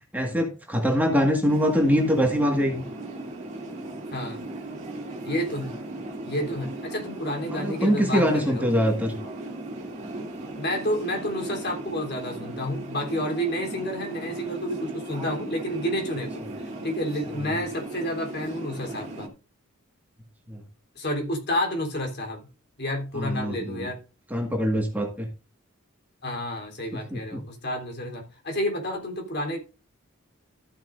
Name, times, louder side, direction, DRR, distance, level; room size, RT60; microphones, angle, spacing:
voice 1, 0.1-2.8 7.5-9.2 17.5-17.6 20.5-20.6 23.2-23.9 24.3-25.3 27.1-27.4, equal, 10° right, 1.8 m, -23 dB
sound 1, 1.5-19.3, right 2 dB, 35° right, 2.9 m, -37 dB
voice 2, 4.1-4.4 5.2-5.7 6.3-8.7 10.6-19.3 21.0-22.5 22.8-24.0 26.2-29.6, equal, 50° left, 3.6 m, -30 dB
14.0 x 9.0 x 2.6 m
head